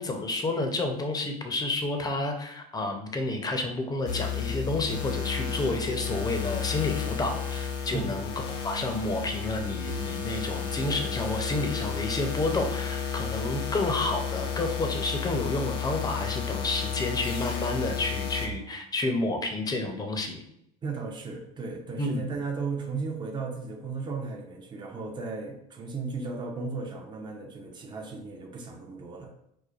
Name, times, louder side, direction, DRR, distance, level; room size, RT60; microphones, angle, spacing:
voice 1, 0.0-8.3 8.6-20.4 22.0-22.2, left 2 dB, 20° left, 4 dB, 0.6 m, -30 dB
sound 1, 4.1-18.5, left 7 dB, 70° left, 0.8 m, -32 dB
voice 2, 20.8-29.3, right 4 dB, 25° right, 1 dB, 0.6 m, -35 dB
4.8 x 2.1 x 2.4 m, 0.76 s
supercardioid pair, 90°, 19 cm